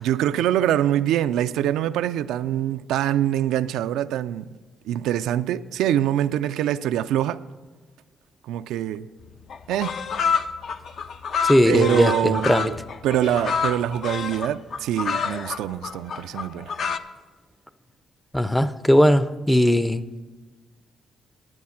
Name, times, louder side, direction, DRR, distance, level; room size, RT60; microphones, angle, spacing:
voice 1, 0.0-4.6 4.8-7.4 8.4-9.1 9.7-10.0 11.6-12.8 13.0-16.7, right 11 dB, 90° right, 0.3 m, -24 dB
sound 1, 9.2-9.3 9.5-17.0, left 6 dB, 55° left, 0.6 m, -28 dB
voice 2, 11.4-12.7 18.3-20.2, equal, 5° left, 0.5 m, -19 dB
11.0 x 9.1 x 5.8 m
cardioid pair, 90°, 0 cm